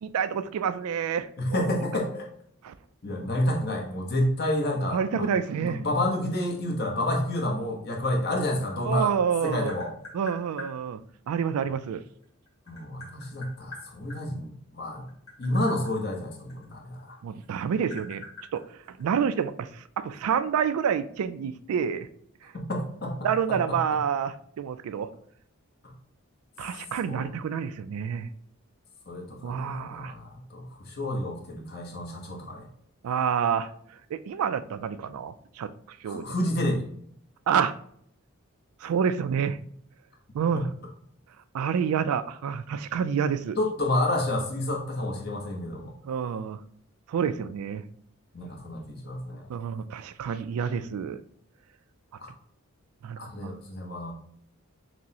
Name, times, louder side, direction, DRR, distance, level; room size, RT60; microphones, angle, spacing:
voice 1, 0.0-1.6 2.6-2.7 4.9-5.8 8.8-9.7 10.1-11.0 11.3-12.0 17.2-18.3 18.5-22.1 23.2-25.1 26.6-28.3 29.4-30.1 33.0-33.7 34.1-36.3 37.5-37.8 38.8-39.6 40.3-40.7 41.5-43.6 46.0-46.6 47.1-47.8 49.5-51.2 53.0-53.6, right 7 dB, 90° right, 14 dB, 0.3 m, -28 dB
voice 2, 1.4-2.3 3.0-9.1 9.4-9.9 12.7-15.1 15.4-17.2 22.7-23.2 23.5-23.8 27.1-27.3 29.1-32.7 36.0-36.9 40.5-40.7 43.6-45.9 48.3-49.4 52.2-52.3 53.2-54.1, left 1 dB, 45° left, 0 dB, 0.8 m, -29 dB
Tap, 9.2-10.7 12.1-14.2 15.0-17.1 17.4-19.4, left 2 dB, 15° left, 1.4 m, -44 dB
5.9 x 2.0 x 2.8 m, 0.66 s
head